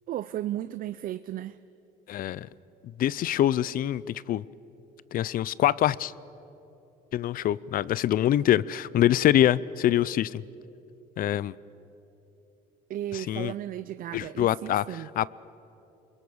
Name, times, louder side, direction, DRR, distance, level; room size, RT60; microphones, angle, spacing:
voice 1, 0.1-1.6 12.9-15.1, right 12 dB, 55° right, 0.5 m, -35 dB
voice 2, 2.1-2.5 3.0-4.4 5.1-6.1 7.1-10.4 11.2-11.5 13.1-13.5 14.1-14.8 15.2-15.3, left 12 dB, 55° left, 0.5 m, -24 dB
28.5 x 21.5 x 7.1 m
cardioid pair, 110°, 17 cm